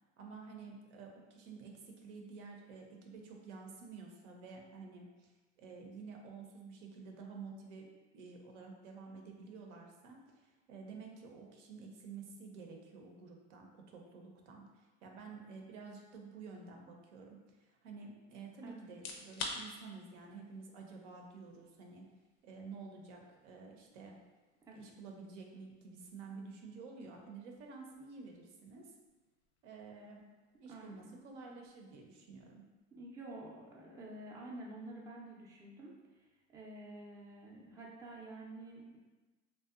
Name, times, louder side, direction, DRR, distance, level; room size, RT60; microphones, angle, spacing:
voice 1, 0.2-5.3 5.6-22.0 22.4-24.2 24.7-28.9 29.6-30.2 30.6-32.6, right 4 dB, 80° right, 1 dB, 0.6 m, -51 dB
sound 1, 18.9-33.7, left 3 dB, 65° left, 0.5 m, -53 dB
voice 2, 30.7-31.1 33.0-39.0, right 2 dB, 10° right, -3 dB, 0.4 m, -49 dB
2.6 x 2.2 x 2.4 m, 1.2 s
hypercardioid pair, 95°, 35 cm